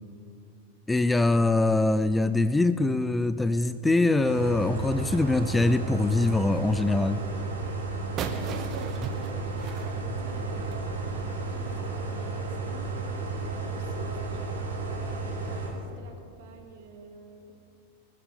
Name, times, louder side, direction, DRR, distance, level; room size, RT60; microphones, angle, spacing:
voice 1, 0.9-7.2, left 2 dB, 10° left, 13 dB, 0.4 m, -23 dB
sound 1, 4.2-15.7, right 3 dB, 70° right, 3.1 m, -33 dB
sound 2, 8.2-10.9, right 7 dB, 35° right, 1.1 m, -37 dB
voice 2, 8.2-12.9 13.5-17.5, right 5 dB, 50° right, 4 dB, 1.9 m, -48 dB
20.5 x 10.0 x 5.0 m, 2.8 s
figure-of-eight pair, 90°, 0 cm